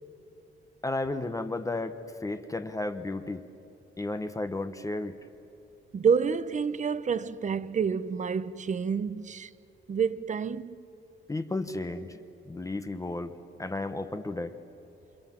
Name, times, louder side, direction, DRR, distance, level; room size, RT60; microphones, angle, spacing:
voice 1, 0.8-3.4 4.0-5.2 11.3-12.2 12.5-13.3 13.6-14.5, left 2 dB, 15° left, 0.9 m, -33 dB
voice 2, 5.9-9.5 9.9-10.8, right 6 dB, 35° right, 0.7 m, -28 dB
28.0 x 27.0 x 7.4 m
wide cardioid pair, 165°, 20 cm